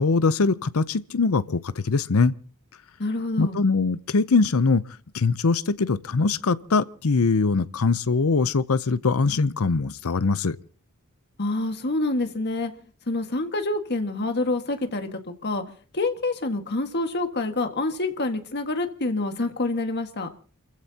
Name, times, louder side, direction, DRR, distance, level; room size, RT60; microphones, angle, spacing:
voice 1, 0.0-2.3 3.4-4.8 5.1-10.6, left 4 dB, 70° left, 0.7 m, -22 dB
voice 2, 3.0-3.6 11.4-12.7 13.1-15.6 15.9-20.3, left 2 dB, 50° left, 1.7 m, -27 dB
29.5 x 15.0 x 2.8 m
head